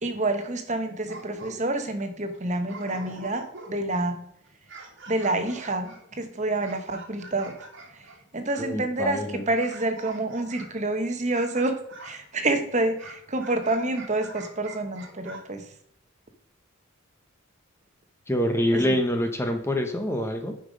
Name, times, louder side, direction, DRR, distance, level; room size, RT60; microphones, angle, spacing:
voice 1, 0.0-4.2 5.1-7.6 7.9-15.7 18.7-19.0, right 2 dB, 30° right, 7 dB, 1.1 m, -28 dB
sound 1, 0.9-1.8 2.3-2.4 2.7-4.0 4.5-8.7 9.5-10.8 11.3-12.3 13.0-15.4, right 2 dB, 55° right, 1.7 m, -45 dB
voice 2, 8.6-9.5 18.3-20.5, equal, 10° left, 4 dB, 0.8 m, -26 dB
9.9 x 5.7 x 5.2 m, 0.71 s
head